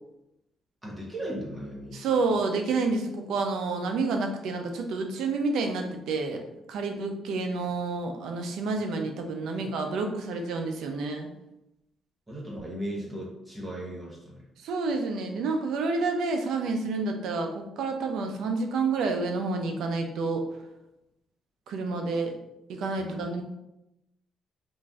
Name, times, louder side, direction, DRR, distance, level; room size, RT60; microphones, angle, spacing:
voice 1, 0.8-2.0 8.7-8.8 9.5-9.6 12.3-14.5 22.9-23.2, right 1 dB, 20° right, -3 dB, 1.0 m, -37 dB
voice 2, 1.9-6.4 6.7-11.3 14.6-20.4 21.7-22.4 22.7-23.4, right 3 dB, 80° right, 4 dB, 0.4 m, -29 dB
3.0 x 2.5 x 2.3 m, 0.89 s
cardioid pair, 90°, 0 cm